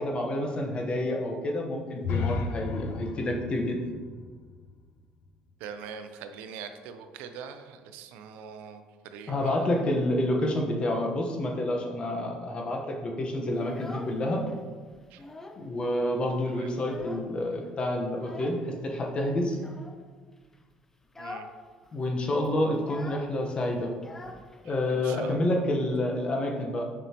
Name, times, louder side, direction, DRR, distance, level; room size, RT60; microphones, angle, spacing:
voice 1, 0.0-3.9 9.3-14.4 15.6-19.6 21.9-23.9 24.6-26.8, left 1 dB, 35° left, 1 dB, 1.1 m, -28 dB
sound 1, 2.0-5.9, left 4 dB, 70° left, 0.6 m, -34 dB
voice 2, 5.6-9.7 15.1-15.2 16.5-16.7 21.2-21.5 24.6-25.6, right 6 dB, 85° right, 8 dB, 0.5 m, -43 dB
Child speech kid speaking, 13.5-14.6 14.9-15.7 16.0-16.1 16.4-17.5 18.2-18.7 19.5-20.0 20.4-20.6 21.0-21.6 21.8-21.9 22.2-25.0, left 2 dB, 15° left, 0.5 m, -44 dB
7.2 x 5.3 x 2.9 m, 1.5 s
cardioid pair, 105°, 3 cm